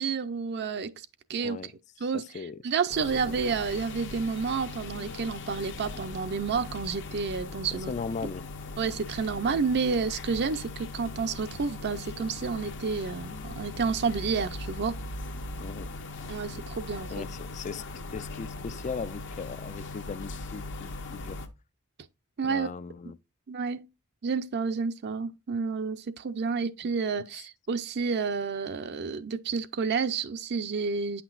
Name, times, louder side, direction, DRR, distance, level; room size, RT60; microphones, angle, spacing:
voice 1, 0.0-1.7 2.0-7.9 8.2-8.3 8.8-14.9 16.3-17.3 22.4-22.7 23.5-23.9 24.2-31.2, right 5 dB, 50° right, 0.5 m, -30 dB
sound 1, 2.9-21.5, left 2 dB, 55° left, 0.8 m, -39 dB
voice 2, 7.7-8.4 15.6-15.9 17.1-17.8 18.1-21.4 22.4-23.2, left 5 dB, 30° left, 0.3 m, -38 dB
8.9 x 5.9 x 2.4 m
head